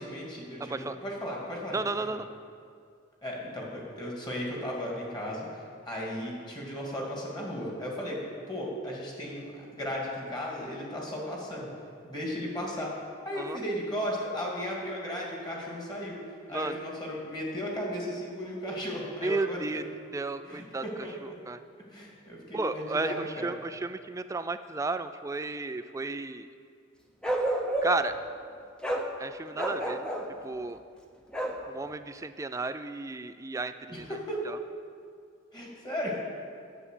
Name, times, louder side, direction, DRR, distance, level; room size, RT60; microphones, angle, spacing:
voice 1, 0.0-1.8 2.1-2.2 3.2-8.2 8.5-11.7 12.0-12.9 13.2-16.2 16.5-19.8 20.4-21.4 21.9-23.5 33.9-34.4 35.5-36.2, equal, 20° left, -3 dB, 2.3 m, -35 dB
voice 2, 1.7-2.3 13.4-13.6 16.5-16.8 19.2-19.8 20.1-21.1 21.5-21.6 22.5-26.5 27.8-28.2 29.2-30.0 30.4-30.8 31.7-34.1 34.5-34.6, right 3 dB, 15° right, 11 dB, 0.3 m, -33 dB
Bark, 27.2-28.1 28.8-29.1 29.5-30.3 31.3-31.6, right 1 dB, 5° left, 0.8 m, -29 dB
9.9 x 7.4 x 8.3 m, 2.3 s
head